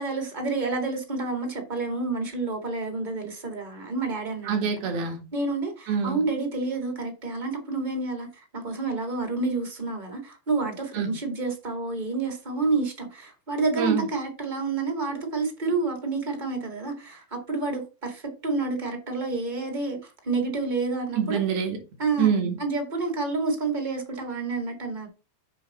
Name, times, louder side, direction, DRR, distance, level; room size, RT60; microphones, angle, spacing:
voice 1, 0.0-4.7 5.3-21.4 22.0-22.3 22.6-25.1, right 3 dB, 20° right, 1.4 m, -29 dB
voice 2, 4.5-5.2 5.9-6.2 10.9-11.1 13.8-14.1 21.2-21.8 22.2-22.6, right 7 dB, 85° right, 3.5 m, -25 dB
7.7 x 5.6 x 4.2 m
omnidirectional pair, 4.1 m